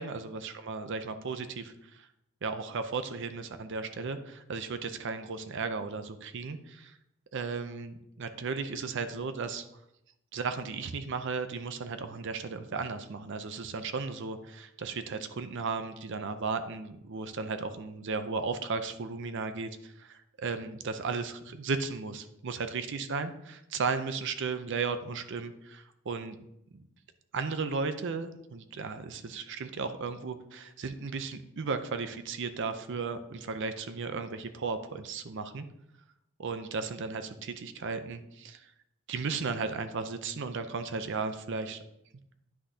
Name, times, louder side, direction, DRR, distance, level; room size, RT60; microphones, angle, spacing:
voice 1, 0.0-2.1 2.4-7.0 7.3-9.6 10.3-26.4 26.7-26.9 27.3-35.7 36.4-38.7 39.1-41.8, right 4 dB, 60° right, 10 dB, 0.5 m, -35 dB
10.0 x 6.2 x 2.7 m, 0.80 s
head